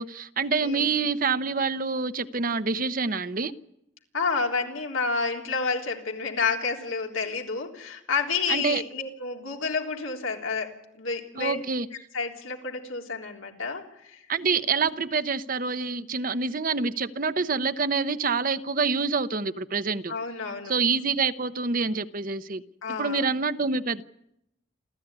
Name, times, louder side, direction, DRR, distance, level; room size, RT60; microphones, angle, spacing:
voice 1, 0.0-3.5 8.5-8.8 11.4-11.9 14.3-20.1 20.7-22.6 23.0-24.0, right 4 dB, 45° right, 12 dB, 0.8 m, -26 dB
voice 2, 0.6-0.9 4.1-10.7 11.0-11.6 12.1-14.2 20.1-20.7 22.8-23.3, left 4 dB, 85° left, 2 dB, 3.6 m, -30 dB
28.0 x 14.0 x 9.7 m, 0.82 s
head